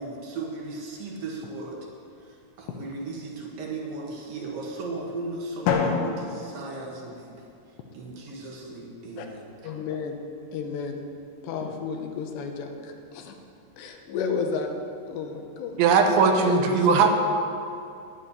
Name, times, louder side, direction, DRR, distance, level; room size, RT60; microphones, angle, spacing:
voice 1, 0.0-1.8 2.2-7.4 7.9-9.7, right 3 dB, 60° right, -1 dB, 2.9 m, -36 dB
Drum, 5.7-7.6, left 5 dB, 90° left, 3.7 m, -28 dB
voice 2, 9.6-10.2 10.5-11.0 11.4-13.3 13.8-14.7 15.1-15.8 16.4-17.1, left 5 dB, 75° left, 4 dB, 3.0 m, -31 dB
voice 3, 15.8-17.1, right 6 dB, 80° right, 4 dB, 3.4 m, -19 dB
10.5 x 10.0 x 9.9 m, 2.5 s
omnidirectional pair, 5.5 m